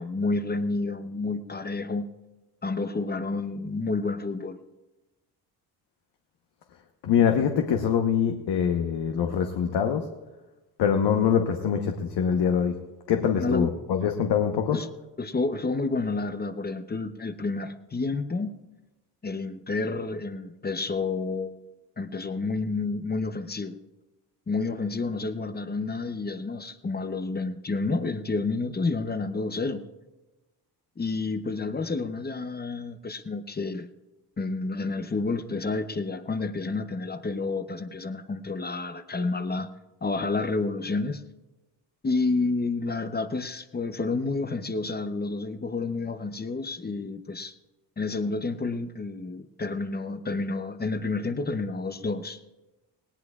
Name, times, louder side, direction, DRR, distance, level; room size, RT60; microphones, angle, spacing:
voice 1, 0.0-2.1 2.6-4.6 13.4-13.7 14.7-14.9 15.2-18.5 19.2-21.7 22.0-23.8 24.5-29.8 31.0-33.9 34.4-39.7 40.0-41.2 42.0-47.5 48.0-52.4, left 3 dB, 20° left, 10 dB, 0.8 m, -30 dB
voice 2, 7.0-10.0 10.8-12.8 13.1-14.8, left 7 dB, 70° left, 3 dB, 1.2 m, -24 dB
18.5 x 18.0 x 2.4 m, 1.1 s
supercardioid pair, 70°, 43 cm